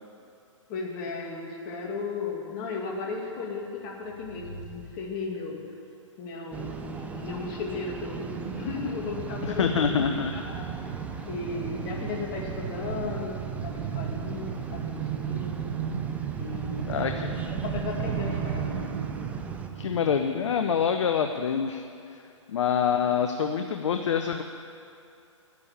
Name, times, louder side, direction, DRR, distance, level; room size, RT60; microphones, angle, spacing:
voice 1, 0.7-5.6 6.2-10.9 11.3-15.7 16.4-18.9, left 4 dB, 35° left, -1 dB, 2.3 m, -36 dB
sound 1, 3.4-5.8, equal, 65° right, 3.8 m, -47 dB
sound 2, 6.5-19.7, right 4 dB, 10° right, 0.6 m, -40 dB
sound 3, 7.9-21.1 21.5-21.6, right 8 dB, 40° right, 1.1 m, -34 dB
voice 2, 9.4-10.3 11.1-11.2 16.8-17.4 19.8-21.8 22.5-24.4, left 7 dB, 65° left, 6 dB, 0.8 m, -26 dB
11.0 x 8.9 x 8.5 m, 2.5 s
hypercardioid pair, 130°, 17 cm